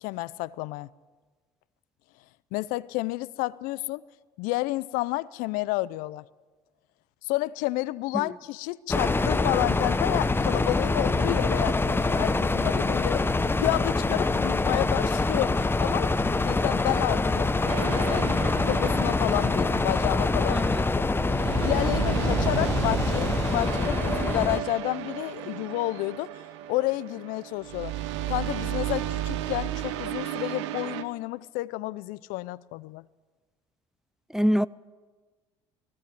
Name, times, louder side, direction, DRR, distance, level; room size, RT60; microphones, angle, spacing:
voice 1, 0.0-0.9 2.5-4.0 4.4-6.2 7.2-13.2 13.6-18.3 18.6-21.1 21.6-26.3 26.7-27.9 28.3-33.0, left 19 dB, 70° left, 0.6 m, -30 dB
sound 1, 8.9-24.6, left 3 dB, 15° left, 1.0 m, -25 dB
sound 2, 17.7-31.0, right 12 dB, 85° right, 0.9 m, -34 dB
voice 2, 20.5-21.3 34.3-34.7, equal, 5° right, 0.5 m, -26 dB
19.5 x 16.5 x 9.5 m
hypercardioid pair, 75°, 15 cm